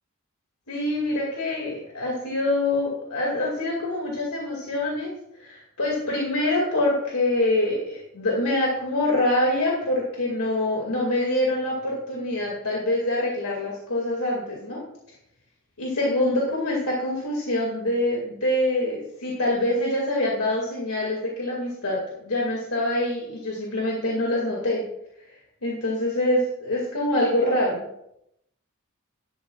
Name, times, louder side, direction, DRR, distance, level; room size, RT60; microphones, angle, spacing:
voice 1, 0.7-5.1 5.4-14.8 15.8-24.8 25.6-27.8, left 1 dB, 85° left, -2 dB, 2.3 m, -25 dB
12.5 x 12.0 x 2.4 m, 0.79 s
head